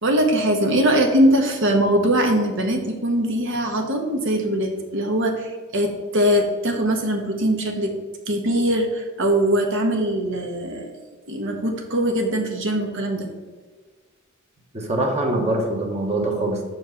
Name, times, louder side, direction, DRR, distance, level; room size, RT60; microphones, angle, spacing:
voice 1, 0.0-7.9 8.3-10.9 11.3-13.3, right 1 dB, 65° right, 3 dB, 1.3 m, -21 dB
voice 2, 14.7-16.7, right 2 dB, 35° right, 1 dB, 1.3 m, -23 dB
6.6 x 4.5 x 5.6 m, 1.4 s
head